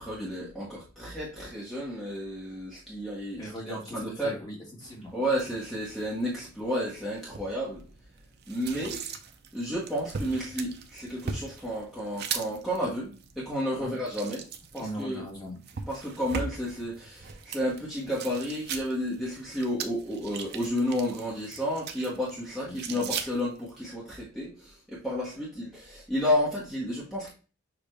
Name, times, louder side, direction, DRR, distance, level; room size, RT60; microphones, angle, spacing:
voice 1, 0.0-4.3 5.1-7.8 8.5-9.0 9.5-14.5 14.7-15.2 15.9-27.3, equal, ahead, -6 dB, 1.1 m, -31 dB
voice 2, 3.4-5.1 13.8-13.9 14.8-15.6 22.7-23.1, equal, 20° left, -2 dB, 1.5 m, -40 dB
sound 1, 4.8-23.8, right 6 dB, 55° right, 0.6 m, -41 dB
6.6 x 2.5 x 3.1 m, 0.35 s
head